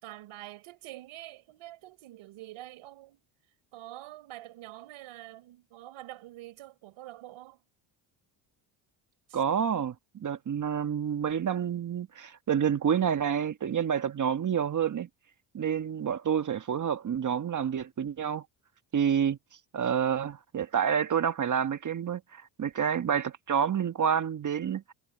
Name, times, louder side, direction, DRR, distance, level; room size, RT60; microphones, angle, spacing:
voice 1, 0.0-3.2 3.7-7.6 9.3-9.4, right 15 dB, 75° right, 4.2 m, -46 dB
voice 2, 9.3-15.1 15.5-18.4 18.9-19.4 19.7-24.9, right 8 dB, 40° right, 1.4 m, -28 dB
supercardioid pair, 85°, 49 cm